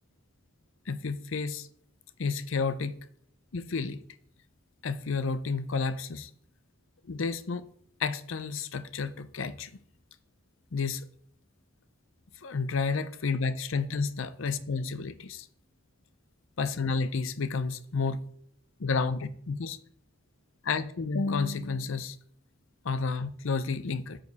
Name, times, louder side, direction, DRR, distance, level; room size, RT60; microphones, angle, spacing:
voice 1, 0.9-1.7 2.2-3.0 3.5-4.0 4.8-6.3 7.1-7.6 8.0-9.7 10.7-11.0 12.4-15.5 16.6-18.2 18.8-19.8 20.6-22.2 22.8-24.2, left 4 dB, 70° left, 0.6 m, -31 dB
13.0 x 5.1 x 4.1 m
head